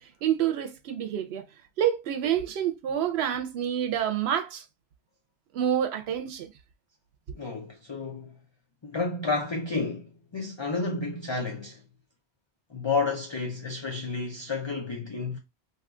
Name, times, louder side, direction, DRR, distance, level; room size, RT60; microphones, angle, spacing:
voice 1, 0.0-1.5 1.8-4.6 5.5-6.5, right 10 dB, 85° right, 0.8 m, -28 dB
voice 2, 7.3-8.4 8.8-11.8 12.7-15.4, left 3 dB, 35° left, 0.5 m, -31 dB
2.7 x 2.3 x 3.6 m
omnidirectional pair, 1.0 m